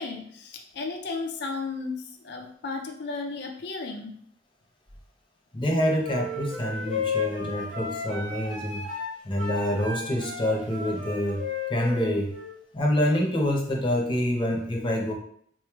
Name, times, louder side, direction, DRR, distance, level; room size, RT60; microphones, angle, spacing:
voice 1, 0.0-4.2, left 4 dB, 65° left, 3 dB, 0.5 m, -34 dB
voice 2, 5.5-8.8 9.2-11.4 11.7-12.3 12.7-15.1, left 1 dB, 25° left, 0 dB, 0.7 m, -26 dB
sound 1, 6.0-12.5, left 4 dB, 85° right, 1.4 m, -34 dB
4.1 x 3.0 x 2.3 m, 0.64 s
head